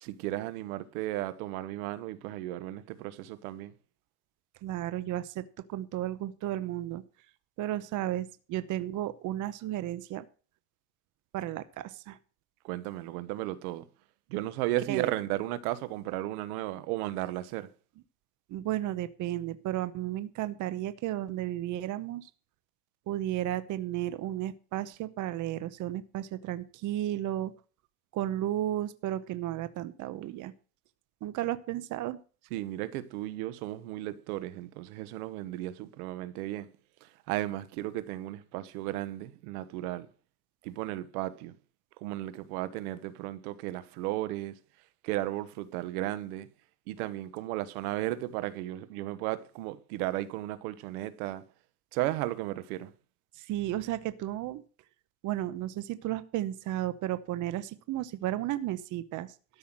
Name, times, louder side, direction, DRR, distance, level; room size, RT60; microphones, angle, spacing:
voice 1, 0.0-3.7 12.6-13.8 14.3-17.7 32.5-36.7 37.0-40.1 40.6-41.5 42.0-44.5 45.0-46.5 46.9-51.4 51.9-52.9, right 15 dB, 85° right, 1.2 m, -34 dB
voice 2, 4.6-7.0 7.6-10.3 11.3-12.2 14.9-15.1 18.5-22.3 23.1-27.5 28.1-30.5 31.2-32.2 53.3-54.6 55.2-59.3, right 13 dB, 45° right, 0.8 m, -33 dB
13.0 x 5.7 x 7.4 m
supercardioid pair, 125°, 43 cm